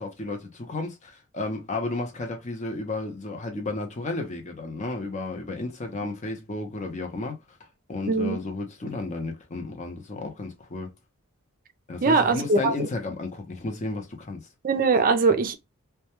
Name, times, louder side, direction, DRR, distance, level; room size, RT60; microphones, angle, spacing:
voice 1, 0.0-7.4 7.9-10.9 11.9-14.4, left 2 dB, 35° left, 0.6 m, -33 dB
voice 2, 8.1-8.4 12.0-12.9 14.6-15.6, right 4 dB, 40° right, 0.4 m, -21 dB
2.2 x 2.2 x 2.8 m
head